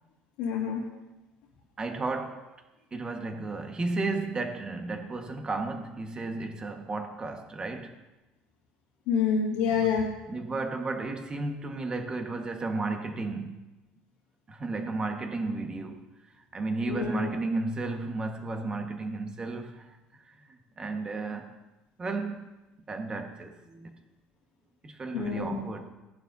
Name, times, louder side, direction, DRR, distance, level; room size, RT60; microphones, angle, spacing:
voice 1, 0.4-0.8 9.1-10.1 16.9-17.3 25.1-25.6, left 6 dB, 90° left, -4 dB, 2.2 m, -27 dB
voice 2, 1.8-2.5 2.9-7.9 9.7-9.9 10.3-13.6 14.5-16.0 16.5-19.9 20.5-21.5 22.0-22.5 22.9-23.9 24.8-25.8, right 3 dB, 25° right, 4 dB, 1.6 m, -33 dB
18.5 x 11.0 x 2.8 m, 1.1 s
cardioid pair, 125°, 4 cm